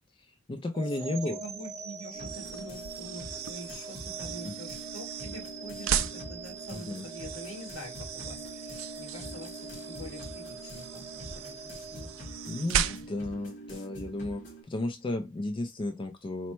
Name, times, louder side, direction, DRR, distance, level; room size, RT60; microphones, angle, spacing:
voice 1, 0.1-1.4 4.4-4.5 6.7-7.0 12.5-16.5, left 2 dB, 25° left, 0.3 m, -34 dB
voice 2, 0.7-11.1 11.3-12.1 12.8-13.0, equal, 70° left, 2.4 m, -45 dB
sound 1, 0.7-12.9, right 4 dB, 30° right, 0.6 m, -44 dB
sound 2, 2.1-14.6, right 1 dB, 55° left, 2.0 m, -45 dB
sound 3, 2.2-13.3, right 9 dB, 70° right, 0.4 m, -37 dB
4.3 x 2.0 x 4.3 m
head